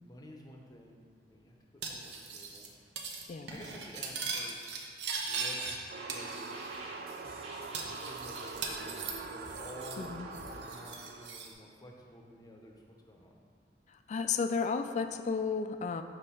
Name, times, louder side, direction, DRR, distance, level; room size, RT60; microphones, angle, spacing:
voice 1, 0.0-2.7 3.5-4.9 5.2-5.6 6.0-13.4, equal, 20° left, 1 dB, 0.7 m, -52 dB
Cutlery silverware, 1.8-2.7 3.0-3.2 3.5-5.8 6.1-6.8 7.1-7.2 7.7-10.1 10.3-11.5, right 4 dB, 75° right, 0.7 m, -39 dB
sound 1, 5.2-10.6, right 1 dB, 35° right, 1.1 m, -51 dB
sound 2, 5.9-11.4, right 4 dB, 55° right, 0.4 m, -44 dB
voice 2, 10.0-10.3 13.9-16.0, left 5 dB, 40° left, 8 dB, 0.3 m, -33 dB
6.3 x 3.2 x 5.5 m, 2.1 s
head